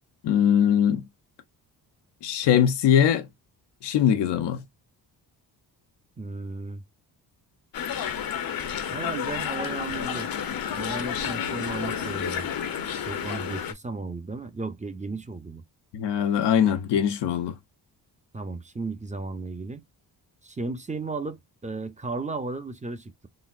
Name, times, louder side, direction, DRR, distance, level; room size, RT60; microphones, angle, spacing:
voice 1, 0.2-1.0 2.2-3.3 3.8-4.6 15.9-17.5, left 9 dB, 90° left, 0.8 m, -21 dB
voice 2, 6.2-6.8 8.9-10.3 10.7-12.5 13.0-15.6 18.3-19.8 20.4-23.3, right 3 dB, 20° right, 0.6 m, -34 dB
sound 1, 7.7-13.7, left 8 dB, 60° left, 0.8 m, -30 dB
4.0 x 2.0 x 2.4 m
cardioid pair, 85°, 41 cm